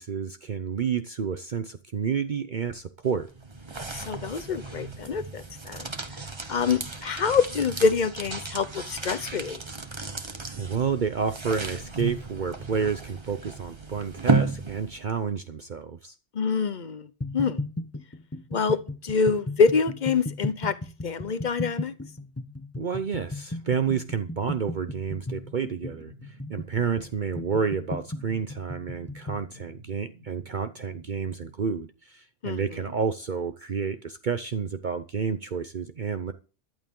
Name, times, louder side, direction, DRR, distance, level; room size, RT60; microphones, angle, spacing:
voice 1, 0.0-3.3 10.6-16.1 22.8-36.3, right 6 dB, 45° right, 0.8 m, -30 dB
sound 1, 3.0-15.2, right 3 dB, 25° right, 1.1 m, -33 dB
voice 2, 3.9-5.9 6.5-9.6 16.3-17.1 17.3-17.6 18.5-18.8 19.0-20.8 21.0-21.9 32.4-32.6, left 5 dB, 45° left, 1.0 m, -25 dB
sound 2, 17.2-29.5, left 2 dB, 15° left, 0.7 m, -36 dB
sound 3, 23.9-31.5, equal, 65° right, 2.7 m, -52 dB
14.5 x 12.0 x 3.8 m
omnidirectional pair, 1.2 m